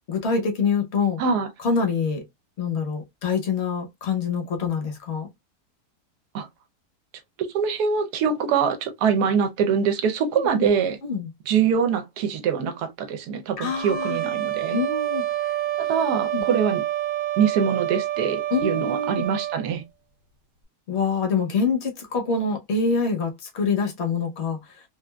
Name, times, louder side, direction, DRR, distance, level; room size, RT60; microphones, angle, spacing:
voice 1, 0.1-1.2 1.6-2.2 2.6-5.3 10.4-10.7 11.0-11.3 13.6-14.2 14.7-15.5 16.3-16.4 18.5-19.2 20.9-24.8, left 5 dB, 50° left, 1.0 m, -25 dB
voice 2, 7.4-11.0 11.5-14.8 15.8-16.8 17.4-19.8, right 6 dB, 75° right, 1.1 m, -24 dB
sound 1, 13.6-19.7, right 13 dB, 60° right, 0.7 m, -28 dB
3.3 x 2.4 x 2.2 m
omnidirectional pair, 1.8 m